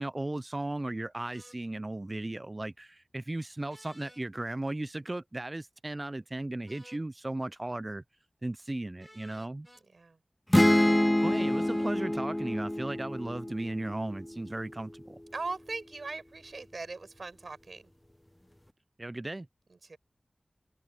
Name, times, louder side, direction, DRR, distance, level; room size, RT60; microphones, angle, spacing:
voice 1, 0.0-8.0 8.4-9.7 11.2-15.2 19.0-19.5, right 2 dB, 35° right, 0.5 m, -36 dB
sound 1, 1.3-1.6 3.7-4.2 6.7-7.1 9.0-9.8 11.1-12.0, equal, 5° right, 6.7 m, -55 dB
voice 2, 9.8-10.2 10.8-11.2 15.3-17.9 19.7-20.0, right 3 dB, 75° right, 7.1 m, -40 dB
sound 2, 10.5-14.3, left 1 dB, 15° left, 0.9 m, -26 dB
open air
cardioid pair, 40°, 0 cm